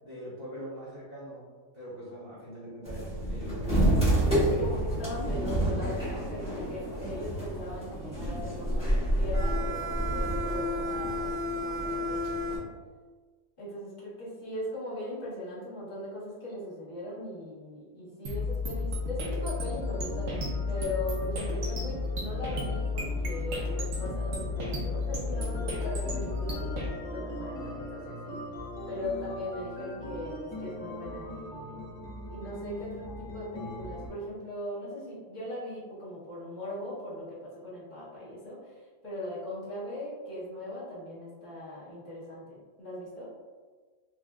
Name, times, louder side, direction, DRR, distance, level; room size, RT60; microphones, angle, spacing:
voice 1, 0.0-1.4 1.7-4.1, equal, 25° right, -10 dB, 1.0 m, -42 dB
sound 1, 2.8-12.6, right 1 dB, 5° right, 0.6 m, -29 dB
voice 2, 4.5-12.7 13.6-26.7 27.1-28.4 28.9-31.9 32.3-43.3, left 1 dB, 40° left, -10 dB, 1.2 m, -39 dB
sound 2, 18.3-26.9, left 3 dB, 70° right, 1.0 m, -32 dB
sound 3, 19.8-34.1, equal, 65° left, 1.0 m, -42 dB
3.4 x 2.4 x 2.3 m, 1.5 s
omnidirectional pair, 1.4 m